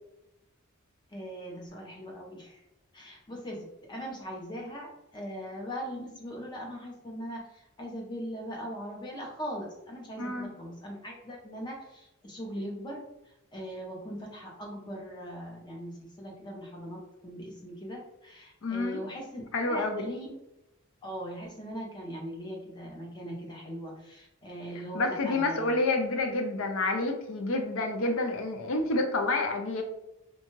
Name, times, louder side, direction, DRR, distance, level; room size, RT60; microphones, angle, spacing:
voice 1, 1.1-2.6 2.9-13.0 13.5-20.4 21.0-25.7, equal, 20° left, -1 dB, 0.6 m, -40 dB
voice 2, 10.2-10.5 18.6-19.0 19.5-20.1 24.9-29.8, left 2 dB, 65° left, 5 dB, 0.5 m, -29 dB
2.6 x 2.3 x 3.0 m, 0.89 s
head